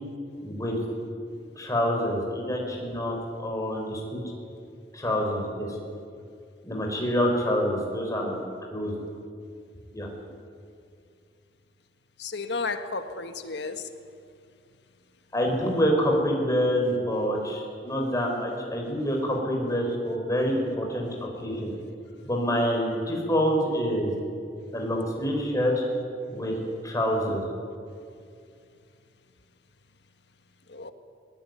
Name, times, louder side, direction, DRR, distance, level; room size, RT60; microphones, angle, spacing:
voice 1, 0.4-0.8 1.6-4.2 4.9-5.8 6.6-8.5 8.7-8.9 9.9-10.1 15.3-21.7 22.3-24.1 24.7-25.8 26.3-27.4, equal, 20° left, 5.3 m, -27 dB
voice 2, 12.2-13.9 30.7-30.9, left 4 dB, 70° left, 1.6 m, -33 dB
21.0 x 20.5 x 9.7 m
head